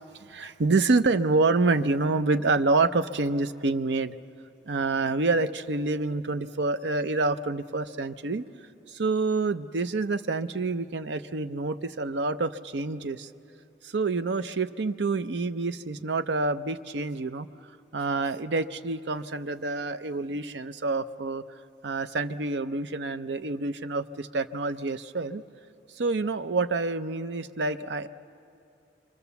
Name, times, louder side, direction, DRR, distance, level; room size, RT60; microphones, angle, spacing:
voice 1, 0.2-4.2 4.7-8.4 8.9-13.3 13.8-17.5 17.9-21.4 21.8-25.4 26.0-28.1, right 3 dB, 75° right, 12 dB, 0.6 m, -27 dB
25.5 x 25.0 x 7.0 m, 2.7 s
head